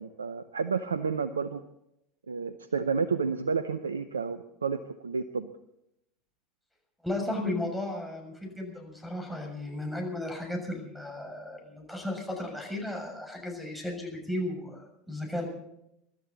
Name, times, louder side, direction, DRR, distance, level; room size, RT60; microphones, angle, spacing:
voice 1, 0.0-1.6 2.3-5.5, right 5 dB, 85° right, 12 dB, 0.7 m, -31 dB
voice 2, 7.0-15.5, left 1 dB, ahead, 3 dB, 6.8 m, -35 dB
25.0 x 13.0 x 4.0 m, 0.81 s
hypercardioid pair, 85°, 0 cm